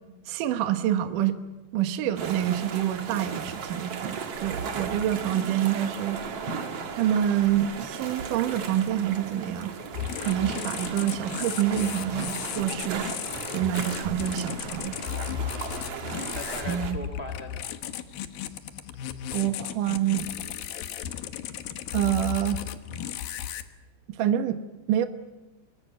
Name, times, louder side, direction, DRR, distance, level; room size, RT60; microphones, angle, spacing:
voice 1, 0.3-1.4 1.7-6.2 7.0-9.7 10.2-13.1 13.5-15.0 16.7-17.0 19.3-20.3 21.9-22.6 24.1-24.6 24.9-25.1, right 11 dB, 75° right, 8 dB, 2.0 m, -27 dB
sound 1, 2.2-16.9, right 6 dB, 55° right, 1.7 m, -36 dB
voice 2, 4.6-5.2 15.3-16.0 16.3-17.6, left 1 dB, 35° right, 7 dB, 1.0 m, -40 dB
sound 2, 9.9-23.6, left 10 dB, 70° left, 2.3 m, -35 dB
25.0 x 20.0 x 9.3 m, 1.0 s
omnidirectional pair, 5.5 m